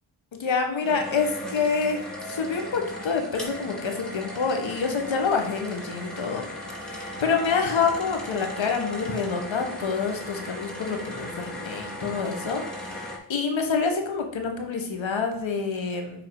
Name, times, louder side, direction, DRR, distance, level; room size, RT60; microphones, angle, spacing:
voice 1, 0.3-6.5 6.8-16.3, left 5 dB, 85° left, 4 dB, 1.5 m, -27 dB
sound 1, 0.8-13.2, left 1 dB, ahead, 2.7 m, -37 dB
10.5 x 3.8 x 4.8 m, 0.77 s
cardioid pair, 60°, 45 cm